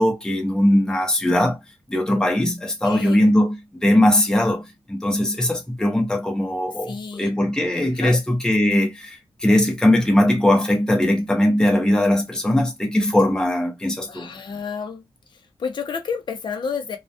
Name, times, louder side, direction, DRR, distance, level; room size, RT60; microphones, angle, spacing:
voice 1, 0.0-1.6 1.9-3.6 3.8-4.6 4.9-14.3, left 1 dB, 5° left, 0.6 m, -20 dB
voice 2, 2.8-3.2 6.9-7.3 8.0-8.2 14.1-15.0 15.3-17.0, left 5 dB, 50° left, 0.5 m, -30 dB
2.3 x 2.1 x 2.5 m
wide cardioid pair, 110°, 10 cm